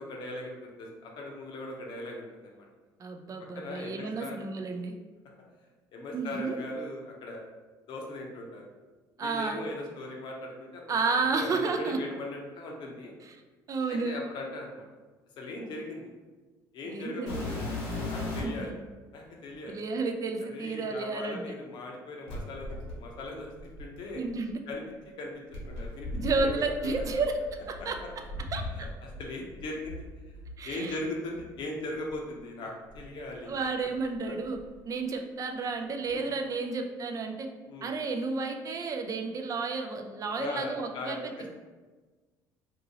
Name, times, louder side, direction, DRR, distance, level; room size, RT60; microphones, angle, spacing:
voice 1, 0.0-2.7 3.5-4.4 5.9-7.4 7.9-8.6 9.2-11.0 11.3-13.1 13.9-14.8 15.4-16.1 16.7-17.7 18.1-18.7 19.1-19.8 20.5-24.2 24.7-24.8 25.2-26.1 26.3-26.9 27.8-27.9 28.7-30.4 30.6-33.7 34.3-34.4 36.1-36.3 37.7-37.9 40.4-41.5, left 2 dB, 60° left, 0 dB, 0.7 m, -39 dB
voice 2, 3.0-4.9 6.1-6.6 9.2-9.6 10.9-12.0 13.7-14.2 16.8-17.3 18.4-18.7 19.7-21.5 24.1-24.6 26.1-27.3 27.9-28.0 28.5-28.6 30.6-30.9 33.4-34.6 34.9-37.5 37.8-41.2, right 4 dB, 40° right, 4 dB, 0.4 m, -31 dB
sound 1, 17.3-18.7 19.5-19.6 22.3-24.4 25.5-29.2 29.5-30.6 31.3-31.5 32.1-32.2 32.9-34.0 34.2-34.8 36.1-36.2, left 2 dB, 80° left, 1.0 m, -38 dB
2.7 x 2.6 x 2.7 m, 1.3 s
supercardioid pair, 85°, 9 cm